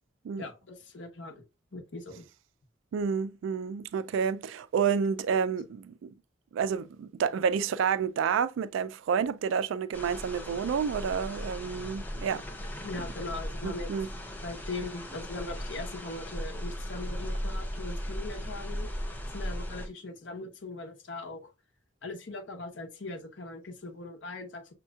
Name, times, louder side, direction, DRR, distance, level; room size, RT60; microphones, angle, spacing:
voice 1, 0.4-1.4 1.7-2.3 12.8-13.9 14.4-21.5 22.0-24.7, left 2 dB, 80° left, 0.9 m, -40 dB
voice 2, 2.9-6.1 6.5-12.4 13.6-14.1, right 6 dB, 90° right, 0.3 m, -29 dB
sound 1, 9.9-19.9, equal, 10° left, 0.5 m, -37 dB
6.2 x 2.9 x 2.3 m
head